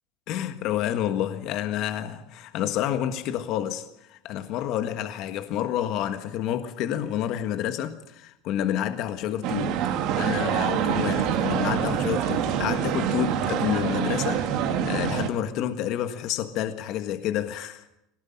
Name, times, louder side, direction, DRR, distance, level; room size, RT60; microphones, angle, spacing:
voice 1, 0.3-9.8 10.2-17.8, left 11 dB, 50° left, 1.5 m, -29 dB
sound 1, 9.4-15.3, right 8 dB, 55° right, 2.3 m, -26 dB
21.5 x 18.5 x 8.7 m
cardioid pair, 155°, 0 cm